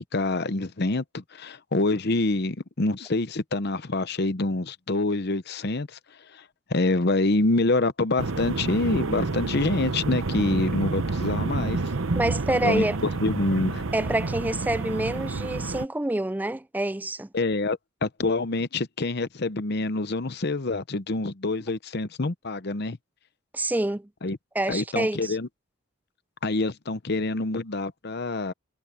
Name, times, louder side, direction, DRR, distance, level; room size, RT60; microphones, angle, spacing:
voice 1, 0.1-6.0 6.3-6.4 6.7-11.8 12.5-13.9 17.3-23.0 24.2-24.4 24.7-25.5 26.4-28.5, left 2 dB, 50° left, 0.8 m, -26 dB
sound 1, 8.2-15.8, right 3 dB, 70° right, 0.9 m, -29 dB
voice 2, 12.2-13.0 13.9-17.3 23.5-24.1 24.5-25.4, right 1 dB, 10° right, 0.4 m, -27 dB
head